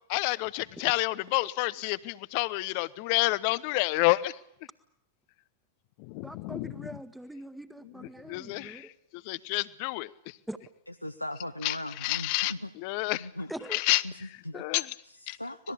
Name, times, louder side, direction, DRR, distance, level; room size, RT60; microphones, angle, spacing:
voice 1, 0.1-4.3 6.0-6.9 8.3-8.9 9.2-10.1 11.6-12.5 12.8-13.3 13.7-14.0 14.5-14.9 15.3-15.4, left 22 dB, 45° left, 0.9 m, -29 dB
voice 2, 6.2-8.9 10.5-10.6 13.5-13.8 14.5-14.6, right 1 dB, 5° right, 1.6 m, -42 dB
voice 3, 11.0-12.7 13.1-13.5 14.0-14.5 15.0-15.7, left 1 dB, 85° left, 0.9 m, -38 dB
25.5 x 20.0 x 8.4 m
figure-of-eight pair, 90°, 0 cm